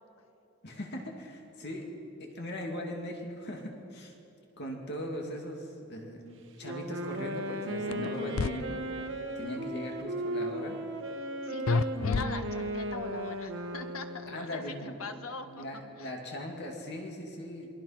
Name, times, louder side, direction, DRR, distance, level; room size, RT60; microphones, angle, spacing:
voice 1, 0.6-1.9 2.2-4.2 4.6-8.9 9.3-10.8 14.3-15.0 15.5-17.7, left 1 dB, 55° left, 1 dB, 2.6 m, -39 dB
Wind instrument woodwind instrument, 6.6-14.5, right 1 dB, 60° right, 2.2 m, -36 dB
sound 1, 7.9-8.5 11.7-12.8, left 4 dB, 70° left, 0.5 m, -30 dB
voice 2, 11.2-15.7 16.0-16.1, left 4 dB, 85° left, 7 dB, 1.7 m, -42 dB
28.0 x 22.5 x 6.0 m, 2.9 s
head